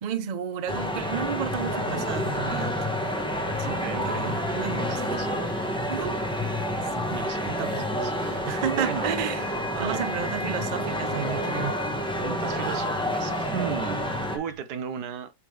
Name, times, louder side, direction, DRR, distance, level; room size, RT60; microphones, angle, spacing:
voice 1, 0.0-2.8 3.7-5.2 5.9-6.2 6.8-7.0 7.4-7.9 8.4-11.8, right 8 dB, 60° right, 0.4 m, -32 dB
sound 1, 0.7-14.4, equal, 5° left, 0.9 m, -29 dB
sound 2, 1.6-14.6, left 6 dB, 80° left, 2.1 m, -49 dB
voice 2, 1.7-2.1 3.6-4.4 4.7-5.3 7.1-9.1 9.7-10.1 12.2-14.1 14.3-15.3, right 8 dB, 85° right, 1.4 m, -36 dB
8.0 x 3.6 x 3.2 m
omnidirectional pair, 1.7 m